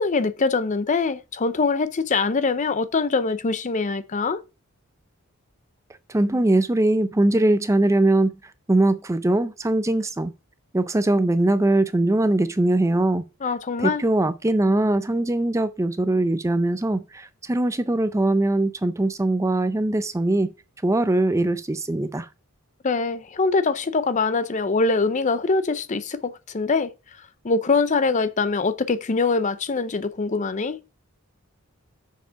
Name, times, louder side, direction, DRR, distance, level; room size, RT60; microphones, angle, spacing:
voice 1, 0.0-4.4 13.4-14.0 22.8-26.9 27.4-30.8, left 4 dB, 35° left, 0.5 m, -23 dB
voice 2, 6.1-8.4 8.7-10.3 10.7-13.3 13.8-20.5 20.8-22.3, right 2 dB, 15° right, 0.4 m, -21 dB
6.7 x 5.3 x 5.6 m
head